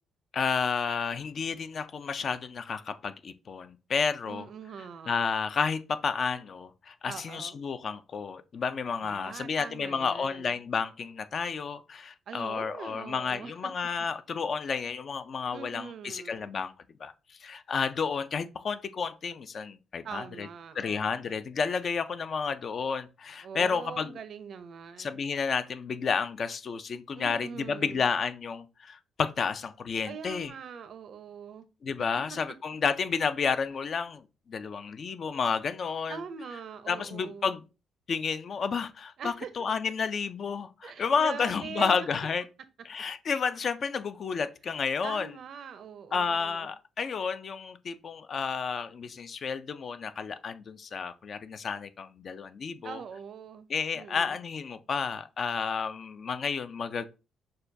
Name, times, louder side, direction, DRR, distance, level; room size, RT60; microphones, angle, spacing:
voice 1, 0.3-4.5 5.1-16.7 17.0-17.1 17.4-20.5 20.8-24.2 25.0-30.5 31.8-36.2 36.9-37.6 38.1-42.4 42.9-45.3 46.1-53.0 53.7-57.1, left 5 dB, 50° left, 0.3 m, -31 dB
voice 2, 4.2-5.1 7.0-7.6 9.0-10.6 12.3-13.7 15.5-16.5 20.0-21.4 23.4-25.2 27.1-28.1 30.0-31.7 36.1-37.5 39.2-39.5 40.8-42.1 45.0-46.7 52.8-53.7 53.9-54.4, right 6 dB, 60° right, 0.5 m, -42 dB
6.3 x 2.2 x 2.6 m
cardioid pair, 90°, 0 cm